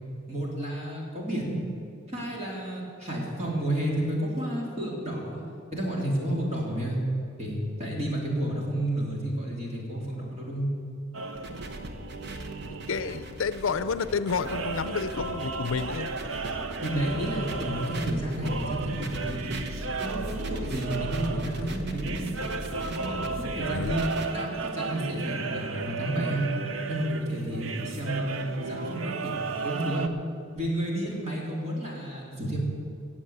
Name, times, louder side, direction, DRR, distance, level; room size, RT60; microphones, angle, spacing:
voice 1, 0.3-1.6 2.1-5.4 5.7-7.0 7.4-10.7 16.8-19.5 20.0-22.3 22.8-26.4 26.9-30.1 30.5-32.6, right 1 dB, 30° right, -3 dB, 3.3 m, -31 dB
sound 1, 11.1-30.1, right 4 dB, 70° right, 0.7 m, -35 dB
sound 2, 11.3-24.3, right 1 dB, 55° right, 1.2 m, -39 dB
voice 2, 12.7-16.4 23.7-23.9, left 5 dB, 75° left, 13 dB, 0.5 m, -30 dB
18.0 x 7.4 x 8.1 m, 2.5 s
head